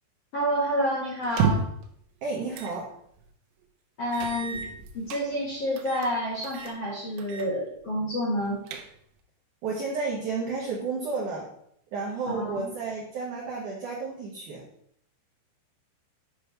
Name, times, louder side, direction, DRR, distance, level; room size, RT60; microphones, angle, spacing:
voice 1, 0.3-1.7 4.0-4.6 4.9-8.6 12.2-12.7, equal, 60° left, -7 dB, 1.6 m, -29 dB
sound 1, 1.2-1.8 2.5-2.8 3.2-3.3 4.1-5.2 5.8-6.1 6.4-6.8 7.2-7.5 7.8-7.9 8.4-9.2, right 5 dB, 85° right, 3.1 m, -30 dB
voice 2, 2.2-2.9 9.6-11.5 11.9-14.6, right 4 dB, 70° right, -5 dB, 2.0 m, -32 dB
9.2 x 3.3 x 5.7 m, 0.69 s
omnidirectional pair, 5.6 m